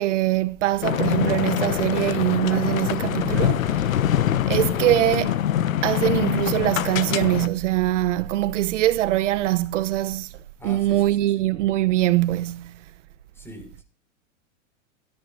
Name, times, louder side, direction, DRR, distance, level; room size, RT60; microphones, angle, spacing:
voice 1, 0.0-3.8 4.5-5.4 5.8-10.3 10.6-12.7, right 15 dB, 65° right, 0.9 m, -23 dB
sound 1, 0.8-7.5, left 11 dB, 85° left, 1.1 m, -24 dB
voice 2, 10.6-11.5 13.3-13.8, left 1 dB, 5° left, 6.0 m, -42 dB
25.5 x 14.0 x 2.6 m
hypercardioid pair, 130°, 39 cm